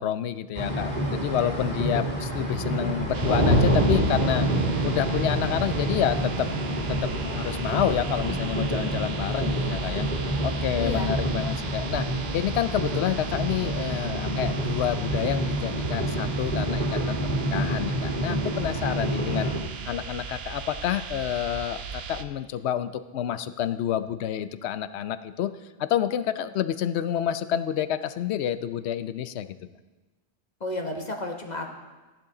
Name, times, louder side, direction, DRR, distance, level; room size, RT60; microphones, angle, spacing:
voice 1, 0.0-4.5 4.8-6.5 6.9-10.1 10.4-12.0 12.3-19.5 19.8-25.5 25.8-29.5, left 10 dB, 80° left, 12 dB, 0.9 m, -28 dB
sound 1, 0.5-19.6, right 1 dB, 45° right, 2.1 m, -27 dB
sound 2, 3.1-22.2, right 6 dB, 65° right, 0.9 m, -38 dB
voice 2, 10.8-11.1 30.6-31.7, left 2 dB, 40° left, 2 dB, 1.2 m, -32 dB
14.5 x 10.5 x 3.8 m, 1.2 s
omnidirectional pair, 1.1 m